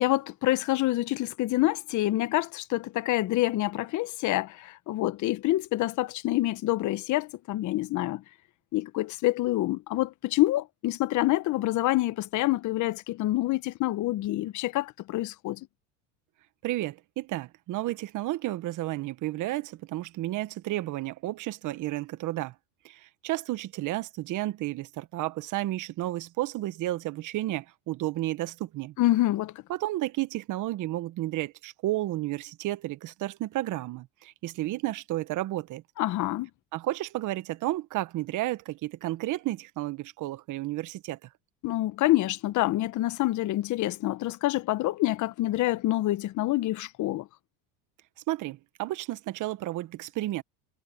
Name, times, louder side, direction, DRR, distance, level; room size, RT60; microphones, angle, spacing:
voice 1, 0.0-8.2 8.7-15.6 29.0-29.6 36.0-36.5 41.6-47.3, left 16 dB, 50° left, 1.2 m, -27 dB
voice 2, 16.6-22.5 22.8-28.9 29.7-35.8 36.7-41.2 48.3-50.4, right 16 dB, 55° right, 1.5 m, -32 dB
supercardioid pair, 95°, 37 cm